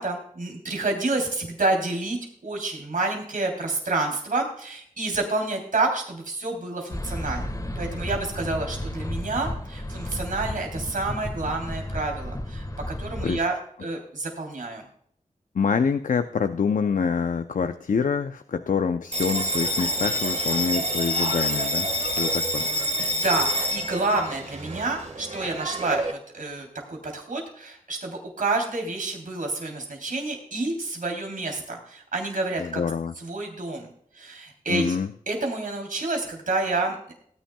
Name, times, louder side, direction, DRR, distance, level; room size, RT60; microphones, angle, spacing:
voice 1, 0.0-7.5 7.7-12.7 13.0-14.8 23.1-32.8 33.2-33.9 34.1-34.9 35.3-37.1, right 2 dB, 80° right, 2 dB, 3.3 m, -29 dB
sound 1, 6.9-13.4, left 1 dB, 25° left, 1.4 m, -33 dB
voice 2, 15.5-22.7 32.6-33.1 34.7-35.1, left 6 dB, 75° left, 9 dB, 0.6 m, -26 dB
Bell, 19.1-26.1, equal, 55° right, 1.6 m, -27 dB
18.0 x 10.0 x 2.3 m, 0.64 s
cardioid pair, 50°, 14 cm